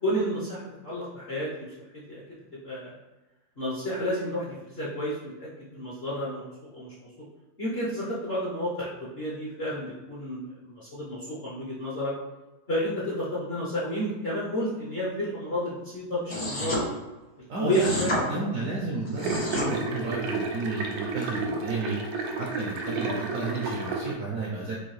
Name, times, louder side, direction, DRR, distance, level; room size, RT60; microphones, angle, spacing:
voice 1, 0.0-1.7 1.9-2.2 2.5-2.9 3.6-7.1 7.6-12.1 12.7-16.8 17.6-18.1, equal, 45° left, -7 dB, 0.8 m, -31 dB
sound 1, 16.3-16.8 17.7-18.2 19.1-19.7, left 1 dB, 85° left, 2.5 m, -29 dB
voice 2, 17.5-22.0 22.4-24.7, right 3 dB, 65° right, -4 dB, 0.8 m, -32 dB
sound 2, 19.2-24.1, right 3 dB, 90° right, 1.4 m, -32 dB
4.4 x 2.5 x 3.1 m, 1.1 s
omnidirectional pair, 2.0 m